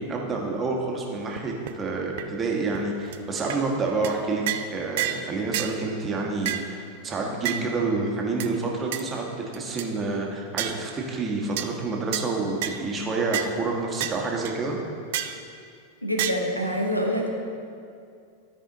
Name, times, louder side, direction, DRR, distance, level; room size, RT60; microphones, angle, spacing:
voice 1, 0.0-4.4 4.7-14.8, right 3 dB, 20° right, -1 dB, 1.3 m, -28 dB
sound 1, 1.4-1.5 1.7-1.8 2.2-2.3 2.7-2.8 3.1-3.2 3.5-3.6 4.0-4.2 4.5-4.7 5.0-5.2 5.5-5.7 6.4-6.7 7.4-7.6 8.4-8.5 8.9-9.0 9.5-9.9 10.6-10.8 11.6-11.7 12.1-12.3 12.6-12.8 13.3-13.5 14.0-14.2 14.4-14.5 15.1-15.4 16.2-16.3, right 12 dB, 50° right, 0.4 m, -29 dB
voice 2, 16.0-17.3, equal, 90° left, 1 dB, 1.0 m, -26 dB
13.0 x 4.9 x 3.9 m, 2.4 s
figure-of-eight pair, 90°, 0 cm